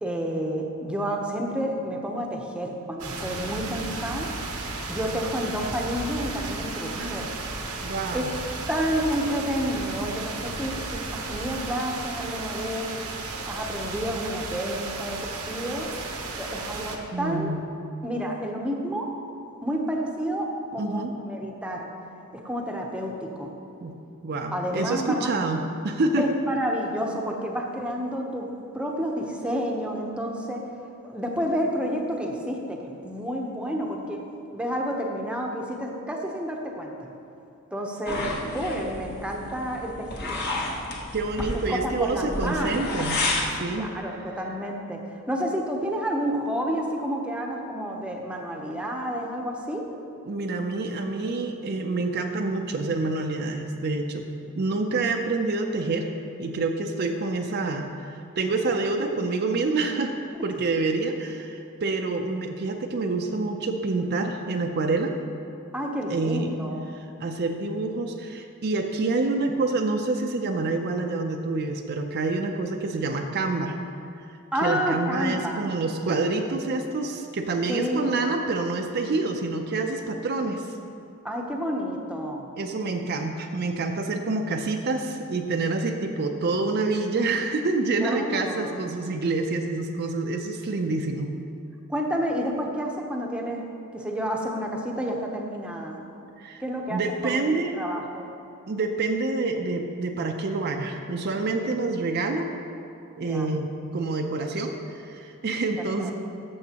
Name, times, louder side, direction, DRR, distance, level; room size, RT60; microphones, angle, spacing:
voice 1, 0.0-4.3 4.9-7.3 8.1-8.3 8.7-12.9 13.4-15.9 16.3-17.5 18.0-19.1 19.6-21.9 22.3-23.5 24.5-25.3 26.2-30.7 31.0-34.2 34.5-37.1 37.7-40.4 41.7-43.0 43.8-49.8 60.3-60.4 65.7-66.8 74.5-75.7 77.7-78.1 81.2-82.5 88.0-88.8 91.9-93.6 93.9-96.0 96.6-98.3 103.2-103.5 106.0-106.1, equal, 5° right, 0 dB, 0.7 m, -30 dB
sound 1, 3.0-17.0, right 3 dB, 85° right, 1.0 m, -34 dB
voice 2, 7.0-7.3 7.8-8.3 17.1-17.7 20.8-21.1 23.8-23.9 24.2-26.3 41.1-43.2 43.5-43.9 50.3-54.3 54.6-56.1 56.4-60.1 60.4-65.1 66.1-66.5 66.9-73.7 74.3-80.8 82.6-91.3 96.4-96.6 96.9-97.7 98.7-102.5 103.2-106.1, right 3 dB, 45° right, 4 dB, 0.5 m, -27 dB
sound 2, 38.1-43.5, left 2 dB, 45° left, 1.1 m, -31 dB
13.0 x 7.0 x 2.9 m, 2.7 s
head